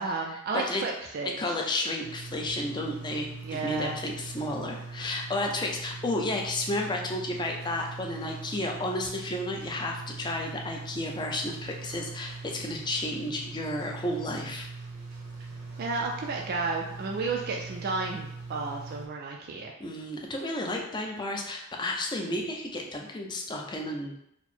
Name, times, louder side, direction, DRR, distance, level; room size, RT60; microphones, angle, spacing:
voice 1, 0.0-1.4 3.4-4.0 15.8-19.7, right 3 dB, 45° right, 0 dB, 0.4 m, -32 dB
voice 2, 1.4-14.7 19.8-24.1, left 1 dB, 20° left, 1 dB, 0.5 m, -32 dB
sound 1, 2.0-19.1, right 3 dB, 90° right, 1.0 m, -42 dB
4.3 x 2.0 x 4.3 m, 0.77 s
head